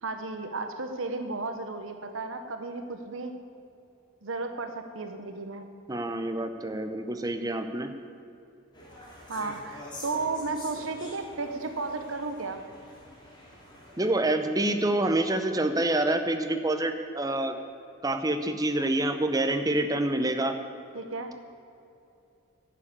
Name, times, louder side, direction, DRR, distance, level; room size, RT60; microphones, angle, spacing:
voice 1, 0.0-3.3 4.2-5.7 9.3-12.6 20.9-21.3, right 3 dB, 70° right, 6 dB, 1.0 m, -34 dB
voice 2, 5.9-7.9 14.0-17.6 18.0-20.6, right 1 dB, 15° right, 7 dB, 0.7 m, -27 dB
sound 1, 8.7-14.1, left 1 dB, 20° left, 2.5 m, -46 dB
11.0 x 7.4 x 8.7 m, 2.7 s
head